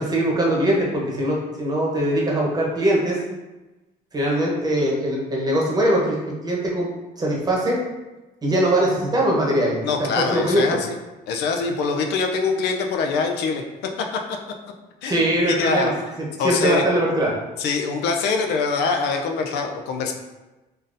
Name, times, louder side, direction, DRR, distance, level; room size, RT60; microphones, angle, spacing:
voice 1, 0.0-3.2 4.1-6.9 7.2-7.8 8.4-10.8 15.1-15.9 16.2-17.3, right 1 dB, 25° right, -3 dB, 0.9 m, -21 dB
voice 2, 9.8-10.8 11.3-14.4 15.0-15.9 16.4-16.8 17.6-20.1, left 4 dB, 85° left, 3 dB, 0.4 m, -24 dB
3.7 x 2.6 x 2.6 m, 1.1 s
cardioid pair, 110°, 17 cm